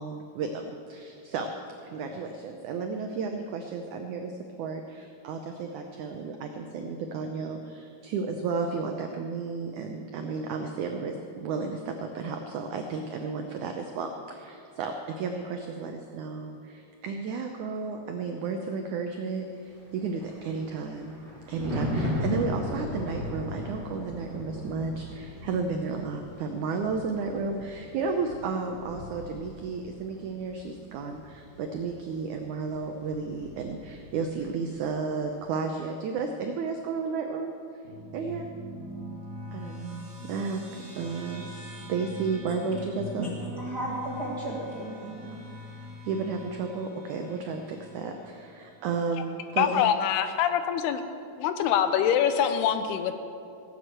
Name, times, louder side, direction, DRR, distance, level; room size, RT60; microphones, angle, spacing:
voice 1, 0.0-1.5 1.8-21.2 21.5-37.5 38.1-38.5 39.5-40.6 40.9-43.3 46.0-49.9, right 4 dB, 90° right, 4 dB, 1.7 m, -33 dB
Thunder, 19.8-34.3 34.6-34.9, left 1 dB, 15° right, 3.4 m, -37 dB
sound 1, 37.8-48.6, equal, 30° right, 3.4 m, -42 dB
voice 2, 43.2-45.4, right 1 dB, 50° right, -5 dB, 1.1 m, -34 dB
voice 3, 49.6-51.0 51.4-53.1, left 9 dB, 85° left, 9 dB, 2.8 m, -24 dB
16.5 x 7.7 x 7.7 m, 2.5 s
omnidirectional pair, 4.5 m